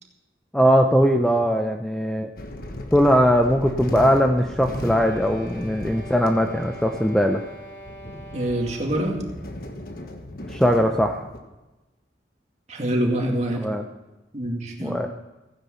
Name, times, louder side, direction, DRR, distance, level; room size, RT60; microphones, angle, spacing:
voice 1, 0.5-2.3 2.9-7.4 10.5-11.2 13.6-13.8 14.8-15.1, equal, 5° left, 4 dB, 0.5 m, -20 dB
sound 1, 2.4-11.4, left 1 dB, 55° left, 1.3 m, -36 dB
sound 2, 4.4-9.1, equal, 85° left, 3.4 m, -43 dB
voice 2, 8.3-9.2 12.7-13.7 14.3-15.0, right 1 dB, 40° right, 0 dB, 2.3 m, -25 dB
15.5 x 9.8 x 5.7 m, 1.1 s
head